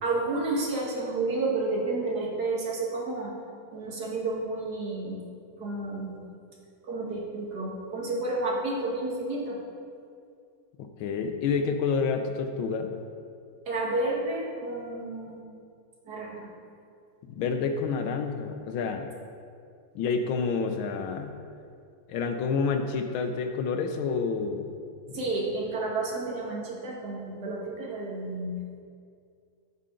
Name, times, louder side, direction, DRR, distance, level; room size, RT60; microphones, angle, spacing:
voice 1, 0.0-3.3 3.7-5.2 5.6-6.2 6.8-9.6 13.7-15.4 16.1-16.5 25.1-28.8, right 2 dB, 55° right, -3 dB, 2.2 m, -31 dB
voice 2, 10.8-12.9 17.4-19.1 19.9-21.3 22.1-24.7, left 5 dB, 85° left, 6 dB, 1.6 m, -28 dB
15.0 x 5.6 x 3.8 m, 2.3 s
omnidirectional pair, 2.1 m